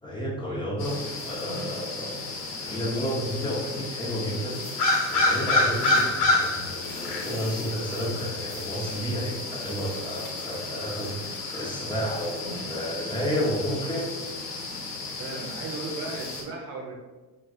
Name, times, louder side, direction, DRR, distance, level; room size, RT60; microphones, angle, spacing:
voice 1, 0.0-2.1 2.6-4.6 5.1-14.1, equal, 10° left, -5 dB, 0.9 m, -31 dB
sound 1, 0.8-16.4, left 2 dB, 65° left, 1.0 m, -30 dB
voice 2, 5.5-6.2 15.1-16.9, right 3 dB, 45° right, 0 dB, 1.0 m, -37 dB
5.9 x 2.5 x 2.4 m, 1.2 s
figure-of-eight pair, 65°, 49 cm